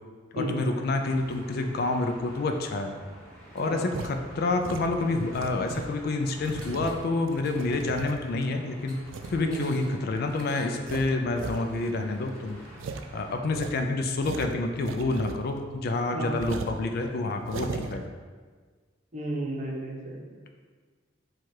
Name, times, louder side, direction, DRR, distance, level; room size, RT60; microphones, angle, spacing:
voice 1, 0.3-2.9 3.5-9.0 9.3-12.6 13.1-18.0, left 2 dB, 55° left, 5 dB, 0.4 m, -28 dB
sound 1, 0.9-13.4, equal, 5° left, 1.3 m, -49 dB
voice 2, 3.6-3.9 9.5-9.7 16.1-16.4 19.1-20.3, right 1 dB, 40° right, -1 dB, 0.7 m, -33 dB
sound 2, 3.9-4.1 4.6-6.0 6.4-8.4 9.1-9.4 9.8-9.9 10.3-10.4 10.8-11.6 11.9-12.0 12.3-12.4 12.8-13.0 13.5-15.6 15.9-16.0 16.4-16.8 17.4-18.0, right 4 dB, 75° right, 0.3 m, -37 dB
4.7 x 2.3 x 4.4 m, 1.5 s
head